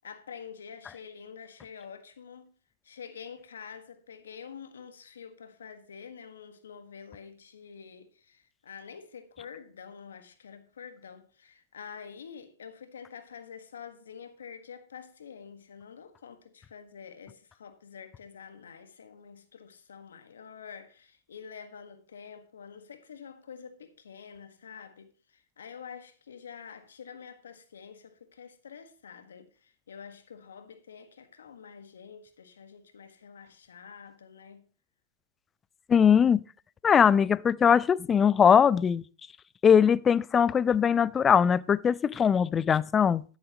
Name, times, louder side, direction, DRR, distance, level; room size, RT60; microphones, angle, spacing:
voice 1, 0.0-2.5 2.8-34.7, left 7 dB, 80° left, 1.4 m, -47 dB
voice 2, 35.9-36.4 36.8-39.0 39.6-43.2, left 7 dB, 20° left, 0.3 m, -21 dB
11.5 x 10.5 x 2.9 m
hypercardioid pair, 110°, 0 cm